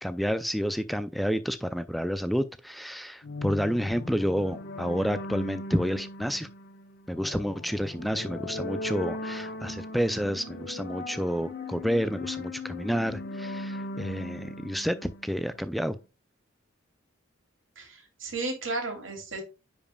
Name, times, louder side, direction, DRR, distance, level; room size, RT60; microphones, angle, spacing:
voice 1, 0.0-6.5 7.1-16.0, equal, ahead, 0.3 m, -29 dB
sound 1, 3.2-15.7, left 2 dB, 50° left, 1.0 m, -39 dB
voice 2, 17.8-19.4, right 3 dB, 75° right, 2.7 m, -34 dB
9.9 x 5.2 x 2.2 m
head